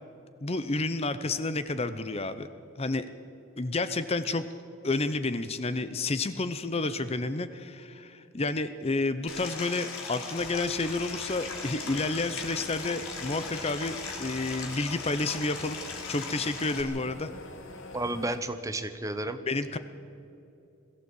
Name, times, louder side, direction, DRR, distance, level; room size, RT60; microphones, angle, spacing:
voice 1, 0.4-2.5 2.8-3.1 3.6-4.4 4.8-15.8 16.1-17.3 19.5-19.8, left 3 dB, 30° left, 12 dB, 0.6 m, -30 dB
Stream, 9.3-16.8, left 4 dB, 75° left, 3.0 m, -39 dB
sound 1, 10.4-18.4, left 2 dB, 60° left, 2.1 m, -46 dB
voice 2, 17.9-19.4, right 1 dB, 15° right, 9 dB, 0.9 m, -32 dB
21.5 x 14.5 x 8.3 m, 2.7 s
head